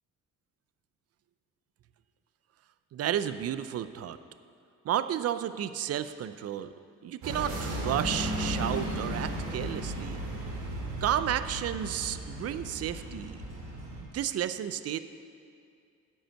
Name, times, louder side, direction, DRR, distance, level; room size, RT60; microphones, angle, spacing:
voice 1, 2.9-4.2 4.8-6.7 7.0-10.2 11.0-13.4 14.1-15.0, right 10 dB, 55° right, 12 dB, 0.5 m, -32 dB
sound 1, 7.2-14.0, right 1 dB, 85° right, 2.2 m, -35 dB
10.0 x 5.6 x 7.6 m, 2.4 s
cardioid pair, 90°, 30 cm